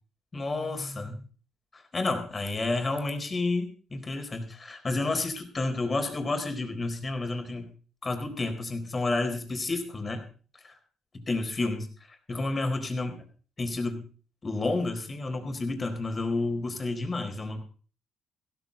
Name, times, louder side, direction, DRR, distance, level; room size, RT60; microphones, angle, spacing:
voice 1, 0.3-1.2 1.7-7.7 8.0-10.3 10.6-10.7 11.1-11.9 12.3-13.2 13.6-14.1 14.4-17.6, left 2 dB, 30° left, 6 dB, 4.2 m, -30 dB
16.0 x 14.0 x 3.9 m, 0.40 s
cardioid pair, 90°, 0 cm